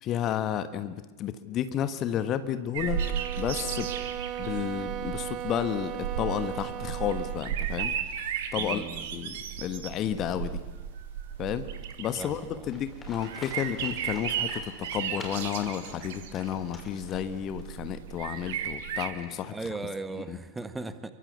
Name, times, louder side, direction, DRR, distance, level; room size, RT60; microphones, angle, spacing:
voice 1, 0.0-3.0 3.4-3.9 4.4-7.9 8.5-8.8 9.1-10.6 11.4-11.6 12.0-12.4 12.7-19.6 20.1-20.4, left 10 dB, 35° left, 11 dB, 1.5 m, -32 dB
sound 1, 2.7-19.1, right 9 dB, 55° right, 2.8 m, -35 dB
sound 2, 2.8-7.5, right 11 dB, 35° right, 1.2 m, -37 dB
voice 2, 8.6-9.1 12.2-12.7 19.5-21.1, right 3 dB, 10° right, 11 dB, 1.7 m, -37 dB
Livestock farm animals working animals, 12.7-17.6, left 2 dB, 15° left, 5.8 m, -47 dB
28.5 x 24.0 x 8.3 m, 1.2 s
figure-of-eight pair, 90°, 0 cm